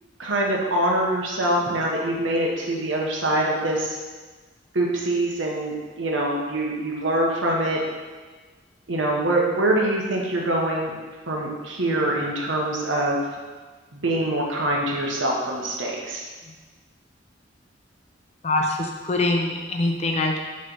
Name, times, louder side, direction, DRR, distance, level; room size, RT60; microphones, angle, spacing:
voice 1, 0.2-4.0 4.7-7.8 8.9-10.9 11.3-13.3 13.9-16.2, right 1 dB, 85° right, -2 dB, 1.2 m, -24 dB
voice 2, 18.4-20.4, left 2 dB, 35° left, 2 dB, 0.6 m, -24 dB
6.4 x 3.3 x 5.6 m, 1.3 s
head